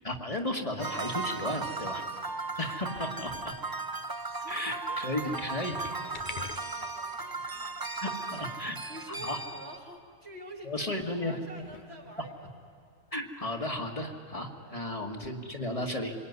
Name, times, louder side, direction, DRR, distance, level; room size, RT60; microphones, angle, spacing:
voice 1, 0.0-2.0 2.6-3.5 4.5-5.8 8.0-8.8 9.1-9.4 10.6-11.4 13.1-16.1, left 1 dB, 30° left, 2 dB, 2.1 m, -34 dB
sound 1, 0.8-9.8, right 3 dB, 20° right, 0.8 m, -36 dB
sound 2, 1.7-2.3 2.9-3.8 4.9-7.3 7.6-7.7 8.2-8.3 8.5-8.6 8.9-9.7 9.9-10.0 10.9-11.0 11.4-12.6 13.4-13.5, left 6 dB, 50° left, 1.0 m, -48 dB
voice 2, 4.3-8.5 8.9-12.5 14.6-15.0, right 1 dB, 70° right, -1 dB, 3.6 m, -49 dB
27.0 x 22.0 x 9.7 m, 2.2 s
omnidirectional pair, 1.1 m